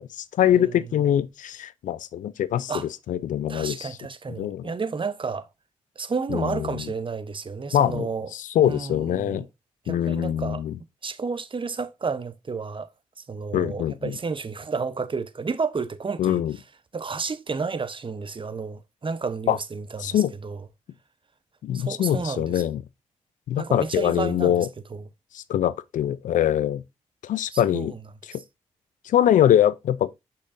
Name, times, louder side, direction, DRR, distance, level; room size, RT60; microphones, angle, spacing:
voice 1, 0.0-2.7 3.1-4.0 4.4-4.6 6.3-6.8 7.7-9.4 9.9-10.7 13.5-14.1 16.2-16.6 19.5-19.6 20.0-20.3 21.6-22.8 23.5-24.7 25.3-26.8 27.2-27.9 29.1-30.1, left 10 dB, 80° left, 0.5 m, -23 dB
voice 2, 0.5-0.9 2.7-2.9 3.5-5.5 6.0-8.3 8.7-9.5 9.8-10.6 11.0-12.9 13.3-16.4 16.9-20.6 21.7-22.6 23.6-25.1 27.5-28.0, right 5 dB, 40° right, 0.8 m, -31 dB
6.4 x 5.7 x 2.6 m
supercardioid pair, 45°, 13 cm